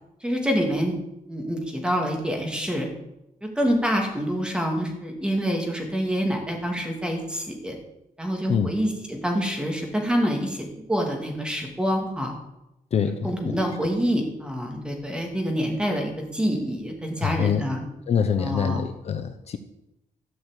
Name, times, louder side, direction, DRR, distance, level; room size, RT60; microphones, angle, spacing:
voice 1, 0.2-0.9 1.3-2.9 3.4-7.7 8.2-12.3 13.2-17.8 18.4-18.8, equal, 5° right, 2 dB, 2.4 m, -26 dB
voice 2, 12.9-13.6 17.2-17.6 18.1-19.6, left 7 dB, 50° left, 8 dB, 0.8 m, -25 dB
13.0 x 6.2 x 8.3 m, 0.90 s
wide cardioid pair, 150°, 14 cm